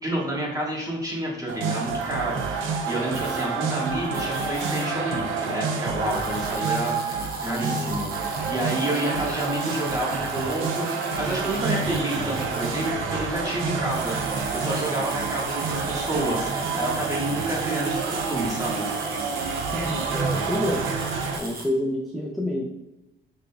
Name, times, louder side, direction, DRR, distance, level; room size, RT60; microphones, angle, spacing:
voice 1, 0.0-2.4 2.9-8.1 8.4-18.9, right 1 dB, 20° right, -3 dB, 1.5 m, -29 dB
sound 1, 1.5-21.4, right 4 dB, 90° right, 0.6 m, -28 dB
sound 2, 3.1-3.5 4.1-4.9 6.1-12.9 13.7-21.7, right 3 dB, 50° right, 1.0 m, -39 dB
voice 2, 7.4-7.9 19.7-20.8 21.4-22.6, left 1 dB, ahead, -1 dB, 0.6 m, -28 dB
5.3 x 3.8 x 2.3 m, 0.95 s
cardioid pair, 90°, 20 cm